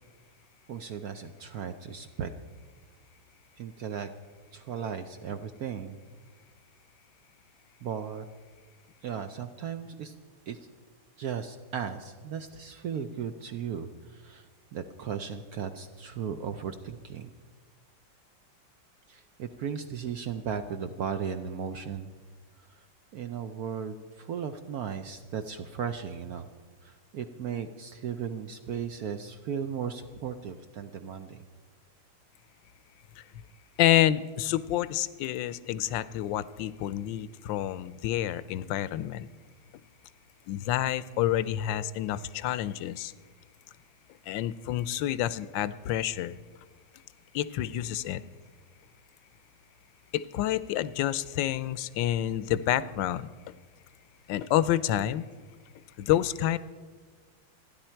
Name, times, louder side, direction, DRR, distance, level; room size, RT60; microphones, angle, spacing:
voice 1, 0.7-2.3 3.6-4.1 4.5-6.0 7.8-8.3 9.0-10.1 10.5-10.6 11.2-17.3 19.1-22.1 22.6-22.8 23.1-26.5 26.8-31.4, right 7 dB, 65° right, 8 dB, 1.0 m, -36 dB
voice 2, 33.8-39.3 40.5-43.1 44.3-46.4 47.3-48.2 50.1-53.3 54.3-55.3 56.0-56.6, left 12 dB, 75° left, 17 dB, 1.3 m, -28 dB
29.0 x 10.5 x 4.5 m, 1.5 s
omnidirectional pair, 2.1 m